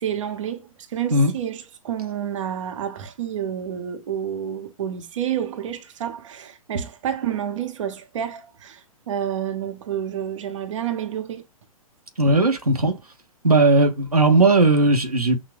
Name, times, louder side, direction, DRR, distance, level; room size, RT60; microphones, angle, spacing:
voice 1, 0.0-11.4, right 9 dB, 55° right, 0.7 m, -29 dB
voice 2, 12.2-12.9 13.4-15.4, right 2 dB, 90° right, 0.8 m, -17 dB
6.1 x 2.1 x 2.4 m
figure-of-eight pair, 110°, 19 cm